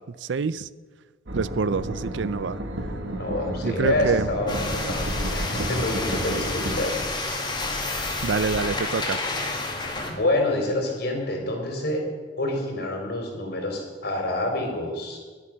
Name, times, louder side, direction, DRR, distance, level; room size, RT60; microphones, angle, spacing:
voice 1, 0.2-0.7 1.3-2.6 3.6-4.3 8.2-9.2, right 5 dB, 70° right, 18 dB, 0.5 m, -26 dB
sound 1, 1.3-6.8, right 1 dB, 90° right, 1.7 m, -32 dB
voice 2, 3.1-7.0 9.8-12.0 12.4-15.2, left 2 dB, 60° left, 2 dB, 4.0 m, -27 dB
sound 2, 4.5-10.1, left 2 dB, 25° left, 2.2 m, -29 dB
21.5 x 8.5 x 6.4 m, 1.5 s
head